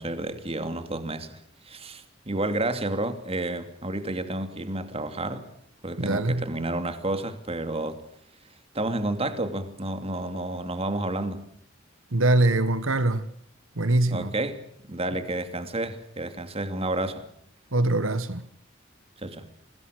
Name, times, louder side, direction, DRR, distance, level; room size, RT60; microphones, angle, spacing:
voice 1, 0.0-1.4 1.7-5.5 5.8-8.0 8.7-11.5 14.1-17.2 19.2-19.5, right 2 dB, 30° right, 2.7 m, -30 dB
voice 2, 6.0-6.5 12.1-13.3 13.7-14.3 17.7-18.4, right 2 dB, 85° right, 1.6 m, -23 dB
28.5 x 21.0 x 6.5 m
head